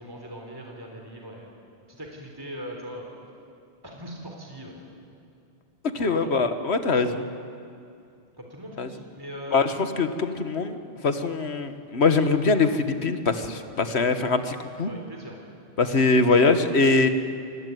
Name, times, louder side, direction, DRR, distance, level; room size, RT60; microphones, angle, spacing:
voice 1, 0.0-1.5 1.9-3.1 3.8-5.0 6.0-6.3 8.4-9.7 14.9-15.4, equal, 20° right, 1 dB, 3.6 m, -40 dB
voice 2, 5.9-7.3 8.8-8.9 9.5-14.9 15.8-17.1, left 3 dB, 80° left, 9 dB, 1.7 m, -23 dB
28.5 x 20.5 x 9.3 m, 2.5 s
omnidirectional pair, 1.1 m